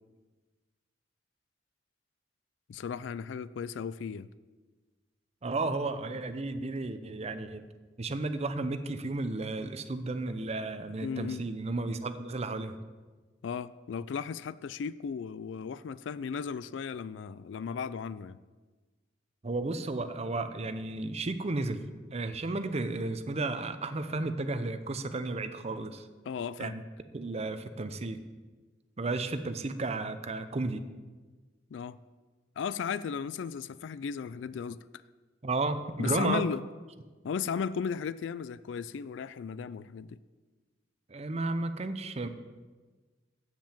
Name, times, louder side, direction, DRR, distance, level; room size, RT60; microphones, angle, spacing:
voice 1, 2.7-4.3 11.0-11.4 13.4-18.4 26.3-26.8 31.7-32.0 32.6-34.8 36.0-36.6 37.2-40.2, left 6 dB, 75° left, 17 dB, 0.3 m, -35 dB
voice 2, 5.4-7.6 8.0-12.8 19.4-21.9 22.1-26.1 26.6-26.8 27.1-28.2 29.0-30.8 35.4-36.4 41.1-42.3, right 2 dB, 35° right, 10 dB, 0.6 m, -33 dB
7.6 x 7.3 x 7.4 m, 1.3 s
head